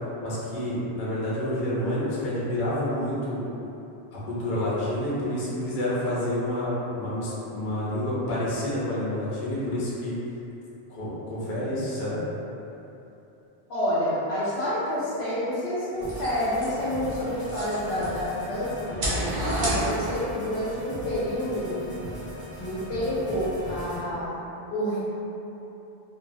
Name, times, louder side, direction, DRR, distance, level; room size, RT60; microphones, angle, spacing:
voice 1, 0.2-3.4 4.1-10.1 10.9-12.2, left 1 dB, 55° left, -8 dB, 0.8 m, -29 dB
voice 2, 13.7-22.0 22.6-24.5 24.7-25.0, equal, 75° left, -8 dB, 0.9 m, -28 dB
sound 1, 16.0-24.0, equal, 35° right, 1.1 m, -39 dB
sound 2, 16.0-18.3 18.8-20.4, right 1 dB, 50° right, 0.8 m, -30 dB
2.7 x 2.3 x 2.5 m, 3.0 s
omnidirectional pair, 1.1 m